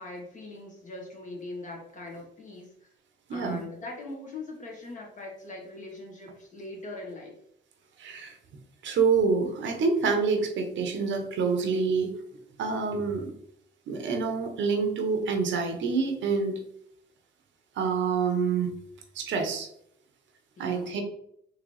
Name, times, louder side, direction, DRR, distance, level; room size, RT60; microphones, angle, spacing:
voice 1, 0.0-2.9 3.3-7.3 20.6-20.9, left 2 dB, 40° left, -1 dB, 1.5 m, -41 dB
voice 2, 3.3-3.6 8.0-8.4 8.8-12.1 12.6-13.3 13.9-16.6 17.8-18.7 19.1-19.7 20.6-21.0, right 5 dB, 70° right, 5 dB, 0.8 m, -27 dB
3.9 x 2.9 x 3.1 m, 0.72 s
cardioid pair, 90°, 20 cm